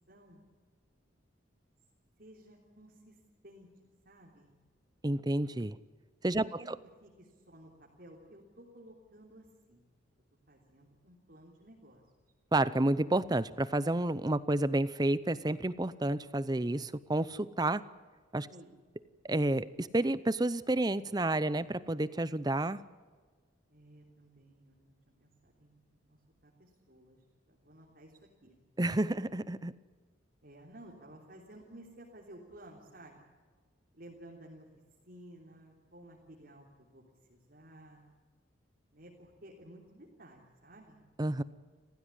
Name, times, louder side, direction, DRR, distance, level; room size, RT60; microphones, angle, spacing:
voice 1, 0.1-0.4 2.2-3.2 3.4-3.7 4.1-4.5 6.3-6.8 7.0-9.8 10.5-12.0 18.5-19.1 23.7-24.9 25.2-28.6 30.4-33.2 33.9-34.7 35.0-37.0 37.3-38.0 38.9-41.0, right 1 dB, 50° right, -2 dB, 3.5 m, -55 dB
voice 2, 5.0-5.8 6.2-6.8 12.5-17.8 18.3-18.5 19.2-22.8 28.8-29.7 41.2-41.4, right 1 dB, 20° right, 16 dB, 0.6 m, -30 dB
29.5 x 15.5 x 9.9 m, 1.5 s
head